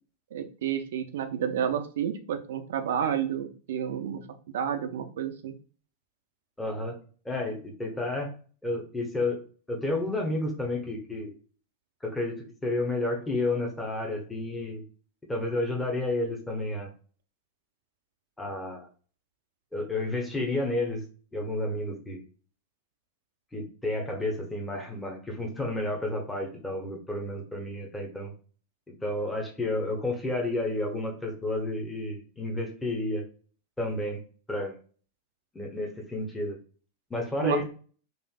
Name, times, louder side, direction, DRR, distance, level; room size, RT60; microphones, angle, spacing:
voice 1, 0.3-5.5 37.4-37.6, right 8 dB, 60° right, 8 dB, 0.5 m, -30 dB
voice 2, 6.6-7.0 7.2-8.3 8.6-9.4 9.7-11.3 12.0-14.8 15.3-16.9 18.4-18.9 19.7-21.0 21.3-22.2 23.5-28.3 29.0-33.2 33.8-34.2 34.5-34.8 35.5-36.6 37.1-37.6, left 2 dB, 10° left, 1 dB, 0.9 m, -31 dB
4.1 x 2.6 x 2.3 m, 0.41 s
figure-of-eight pair, 90°, 0 cm